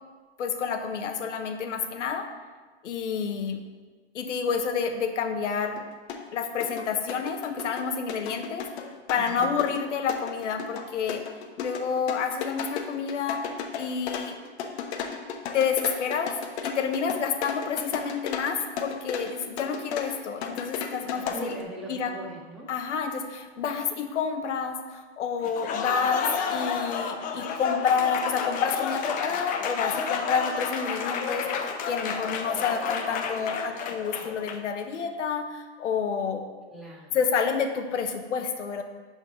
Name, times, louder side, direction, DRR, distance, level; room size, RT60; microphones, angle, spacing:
voice 1, 0.4-2.3 2.8-3.6 4.1-5.8 6.3-8.7 9.1-11.2 11.6-13.5 13.7-14.4 15.5-16.3 16.6-21.6 21.9-22.2 22.7-36.4 37.1-38.8, left 6 dB, 85° left, 6 dB, 1.1 m, -29 dB
sound 1, 5.8-5.9 6.1-21.6, left 7 dB, 65° left, 1.2 m, -35 dB
voice 2, 9.1-9.5 21.1-22.7 36.7-37.1, right 1 dB, ahead, -5 dB, 1.7 m, -40 dB
Applause, 25.4-34.8, left 6 dB, 25° left, 0.6 m, -31 dB
10.5 x 4.3 x 5.3 m, 1.4 s
hypercardioid pair, 135°, 35 cm